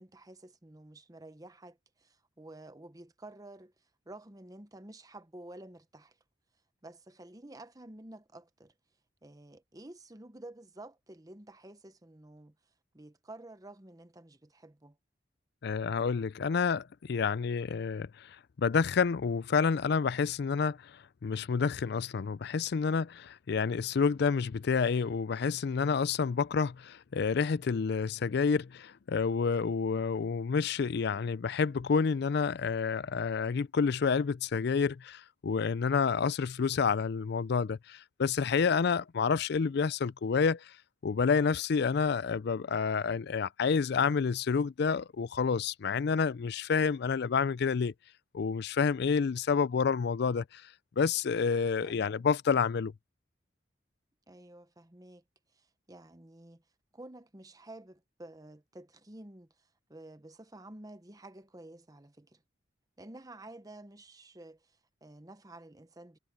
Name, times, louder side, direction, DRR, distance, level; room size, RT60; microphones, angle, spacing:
voice 1, 0.0-3.7 4.1-6.2 6.8-8.7 9.2-12.5 12.9-15.0 51.8-52.2 54.3-55.2 55.5-56.6 56.9-59.5 59.9-62.4 63.0-66.2, right 1 dB, 20° right, 0.9 m, -50 dB
voice 2, 15.6-18.3 18.6-20.8 21.2-40.6 41.0-47.9 48.3-50.6 51.0-52.9, left 5 dB, 60° left, 0.4 m, -29 dB
head